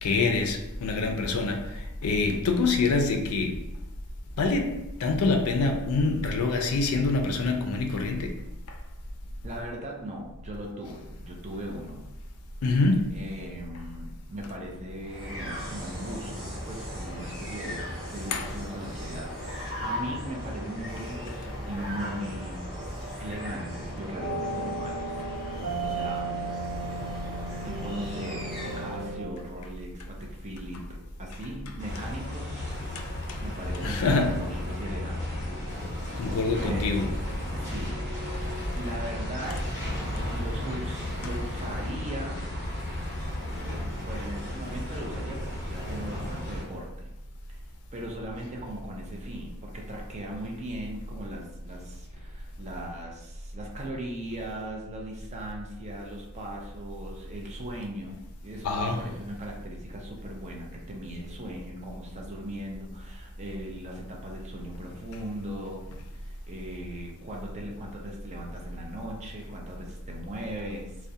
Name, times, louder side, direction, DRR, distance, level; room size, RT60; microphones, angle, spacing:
voice 1, 0.0-3.6 4.4-8.4 8.7-8.8 12.6-13.1 18.3-18.6 21.3-21.4 33.0-33.4 33.8-34.4 36.2-37.2 41.2-41.4 58.6-59.1 65.9-66.0, left 3 dB, 75° left, 0.4 m, -26 dB
voice 2, 9.4-12.1 13.1-22.7 23.2-26.3 27.6-30.8 31.2-32.7 33.0-35.4 36.0-37.0 37.6-38.1 38.8-40.0 40.3-42.5 44.0-47.1 47.9-65.9 66.1-71.0, right 1 dB, 30° right, 0.4 m, -39 dB
sound 1, 15.0-29.2, equal, ahead, 1.1 m, -37 dB
sound 2, 24.2-29.3, right 2 dB, 75° right, 0.7 m, -35 dB
sound 3, 31.8-46.6, left 1 dB, 35° left, 1.1 m, -34 dB
2.3 x 2.1 x 2.7 m
head